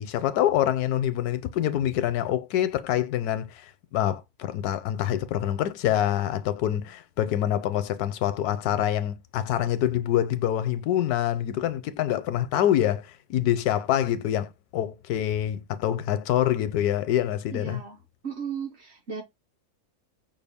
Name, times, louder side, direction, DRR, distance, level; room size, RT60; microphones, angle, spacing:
voice 1, 0.0-17.8, left 11 dB, 80° left, 1.1 m, -26 dB
voice 2, 17.5-18.0 18.2-19.2, right 6 dB, 55° right, 0.8 m, -35 dB
5.7 x 2.3 x 3.4 m
omnidirectional pair, 1.6 m